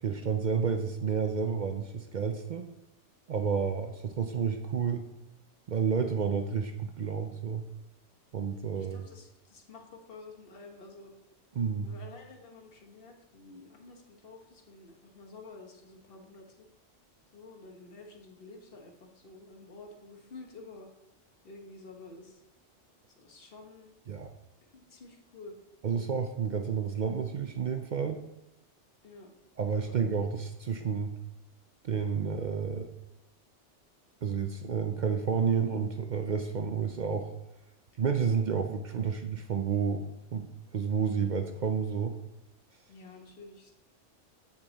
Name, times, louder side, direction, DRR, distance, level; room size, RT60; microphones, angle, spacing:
voice 1, 0.0-2.7 3.3-5.1 5.7-7.7 8.3-9.1 11.6-11.9 24.1-24.3 25.8-28.3 29.6-31.2 31.8-32.9 34.2-37.3 38.0-42.2, right 6 dB, 55° right, 6 dB, 0.5 m, -30 dB
voice 2, 8.7-11.1 11.8-16.7 17.3-20.9 21.4-22.4 23.2-23.9 24.7-25.5 29.0-29.3 29.8-30.0 42.9-43.7, left 3 dB, 55° left, 2 dB, 1.4 m, -50 dB
8.2 x 6.1 x 4.0 m, 0.92 s
omnidirectional pair, 1.2 m